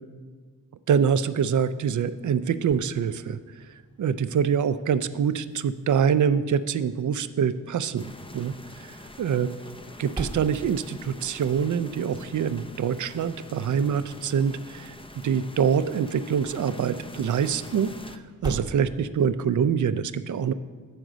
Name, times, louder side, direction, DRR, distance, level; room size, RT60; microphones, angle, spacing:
voice 1, 0.9-3.4 4.0-8.5 8.9-9.5 10.0-14.9 15.2-17.9 18.4-20.5, right 7 dB, 60° right, 13 dB, 0.4 m, -25 dB
sound 1, 1.4-19.5, right 2 dB, 15° right, 0.9 m, -45 dB
sound 2, 8.0-18.2, left 1 dB, 15° left, 0.5 m, -45 dB
7.8 x 5.0 x 6.1 m, 1.6 s
cardioid pair, 60°, 34 cm